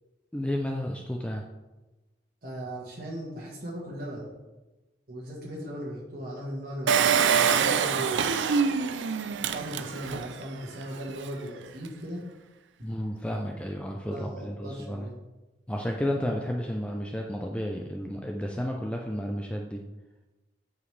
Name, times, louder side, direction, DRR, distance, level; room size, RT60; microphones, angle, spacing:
voice 1, 0.3-1.4 12.8-15.1 15.7-19.8, equal, 5° left, 1 dB, 0.4 m, -32 dB
voice 2, 2.4-4.3 5.1-8.3 9.4-12.2 14.1-15.2, equal, 55° right, -5 dB, 1.3 m, -38 dB
Engine, 6.9-10.3 10.8-10.9 11.1-11.2, right 6 dB, 80° right, 0.4 m, -25 dB
8.3 x 4.9 x 3.2 m, 1.1 s
head